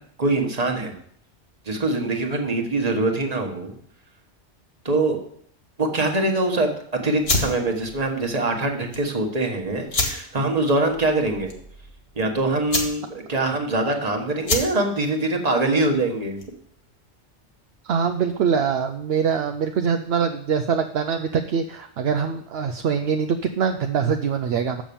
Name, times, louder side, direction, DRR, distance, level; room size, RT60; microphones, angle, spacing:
voice 1, 0.2-1.0 1.6-3.7 4.8-5.2 5.8-6.7 7.0-11.5 12.1-16.4, right 2 dB, 35° right, 2 dB, 1.4 m, -23 dB
sound 1, 7.2-16.7, left 2 dB, 55° left, 1.9 m, -30 dB
voice 2, 17.8-24.8, right 6 dB, 65° right, 5 dB, 0.8 m, -23 dB
7.2 x 6.1 x 7.0 m, 0.65 s
omnidirectional pair, 1.2 m